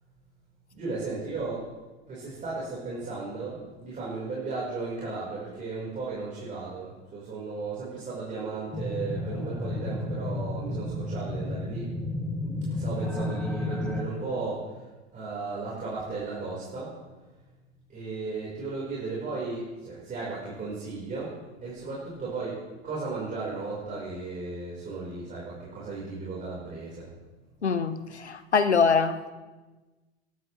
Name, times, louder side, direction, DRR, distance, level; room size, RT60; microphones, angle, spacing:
voice 1, 0.7-1.7 2.1-11.9 12.7-14.7 15.1-16.9 17.9-21.4 21.6-27.1, right 3 dB, 25° right, -6 dB, 4.5 m, -35 dB
sound 1, 8.7-14.0, left 1 dB, 5° left, 1.3 m, -32 dB
voice 2, 27.6-29.3, left 5 dB, 80° left, 12 dB, 1.0 m, -24 dB
20.0 x 13.0 x 3.2 m, 1.2 s
figure-of-eight pair, 85°, 33 cm